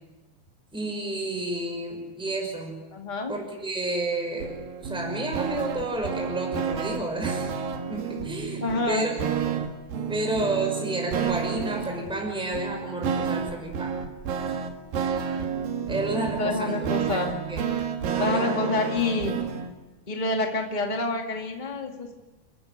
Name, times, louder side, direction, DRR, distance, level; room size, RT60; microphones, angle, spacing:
voice 1, 0.7-2.8 3.3-7.5 7.9-9.1 10.0-13.9 15.9-16.9 17.5-17.6 18.1-18.7, right 2 dB, ahead, 2 dB, 5.3 m, -31 dB
voice 2, 2.9-3.3 8.6-9.1 16.4-17.3 18.2-19.4 20.1-22.1, left 2 dB, 30° left, 1 dB, 0.8 m, -27 dB
sound 1, 4.4-19.7, right 7 dB, 60° right, 3.3 m, -30 dB
30.0 x 15.0 x 9.6 m, 1.1 s
omnidirectional pair, 5.0 m